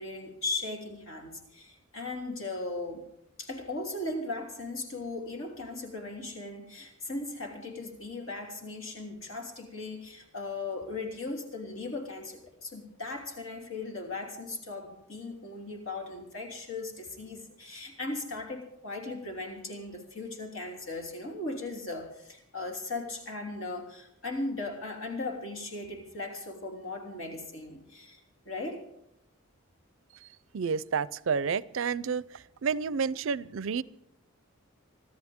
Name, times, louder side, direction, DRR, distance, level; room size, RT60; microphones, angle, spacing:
voice 1, 0.0-3.1 3.4-28.9, left 2 dB, 70° left, 2 dB, 3.4 m, -38 dB
voice 2, 30.5-32.2 32.6-33.8, right 6 dB, 65° right, 19 dB, 0.5 m, -29 dB
25.0 x 13.5 x 3.6 m, 0.74 s
head